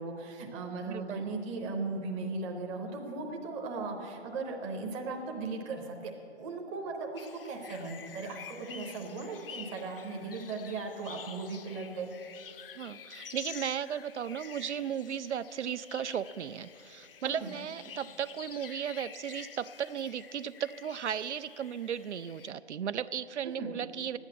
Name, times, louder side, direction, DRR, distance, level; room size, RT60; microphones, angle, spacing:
voice 1, 0.0-6.1 6.4-12.1 17.4-17.5 23.6-23.8, right 3 dB, 10° right, 2 dB, 0.7 m, -37 dB
voice 2, 0.8-1.3 12.8-24.2, right 8 dB, 80° right, 15 dB, 0.5 m, -35 dB
sound 1, 7.2-22.5, left 7 dB, 55° left, 0.7 m, -49 dB
11.0 x 8.9 x 8.4 m, 3.0 s
figure-of-eight pair, 140°, 34 cm